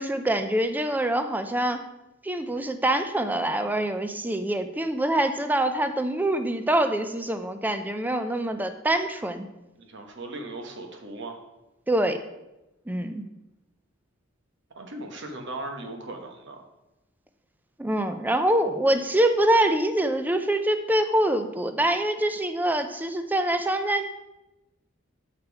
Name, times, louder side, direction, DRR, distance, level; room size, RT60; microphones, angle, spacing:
voice 1, 0.0-1.8 2.2-9.5 11.9-12.2 12.9-13.2 17.8-24.0, right 1 dB, 10° right, 9 dB, 0.4 m, -25 dB
voice 2, 9.8-11.4 14.7-16.6, right 2 dB, 60° right, 4 dB, 1.1 m, -38 dB
6.7 x 5.2 x 4.6 m, 0.97 s
head